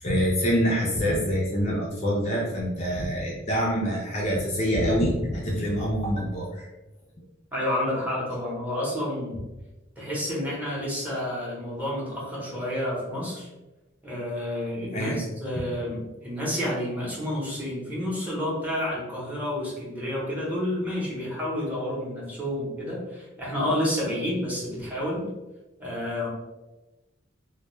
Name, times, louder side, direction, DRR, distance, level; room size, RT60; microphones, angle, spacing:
voice 1, 0.0-6.7 14.9-15.2, equal, 35° left, -3 dB, 0.4 m, -25 dB
voice 2, 7.5-9.4 10.0-13.5 14.0-25.3 25.8-26.3, left 1 dB, 10° right, -6 dB, 0.7 m, -30 dB
2.1 x 2.1 x 3.0 m, 1.1 s
head